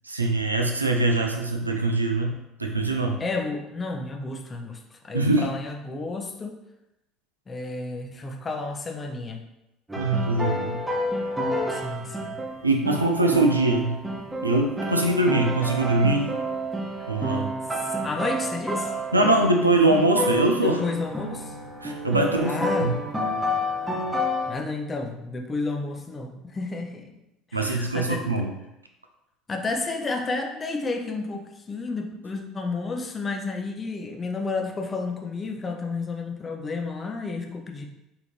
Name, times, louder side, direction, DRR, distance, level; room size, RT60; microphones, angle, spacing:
voice 1, 0.1-2.3 2.6-3.2 5.1-5.5 10.0-10.8 12.6-13.9 14.4-16.3 17.1-17.5 19.1-20.8 21.8-22.5 22.8-22.9 27.5-28.5, right 2 dB, 90° right, 3 dB, 0.4 m, -22 dB
voice 2, 3.2-6.6 7.5-9.4 11.7-12.4 17.7-18.9 20.3-21.6 22.4-22.9 24.5-27.1 27.5-28.3 29.5-37.9, left 3 dB, 25° left, 3 dB, 0.6 m, -31 dB
sound 1, 9.9-19.6 19.9-24.6, equal, 10° right, 0.8 m, -29 dB
4.1 x 2.9 x 3.1 m, 0.89 s
figure-of-eight pair, 65°, 0 cm